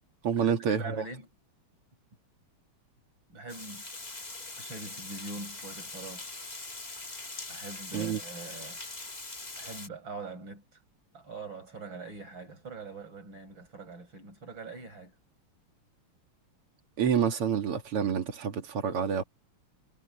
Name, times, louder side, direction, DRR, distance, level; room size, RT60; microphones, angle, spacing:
voice 1, 0.2-1.0 7.9-8.2 17.0-19.2, right 7 dB, 90° right, 3.0 m, -28 dB
voice 2, 0.8-1.3 3.3-3.8 4.6-6.3 7.5-8.8 9.6-10.8 11.1-15.2, right 3 dB, 60° right, 7.7 m, -43 dB
Water, 3.5-9.9, left 2 dB, 20° left, 2.0 m, -42 dB
omnidirectional pair, 2.4 m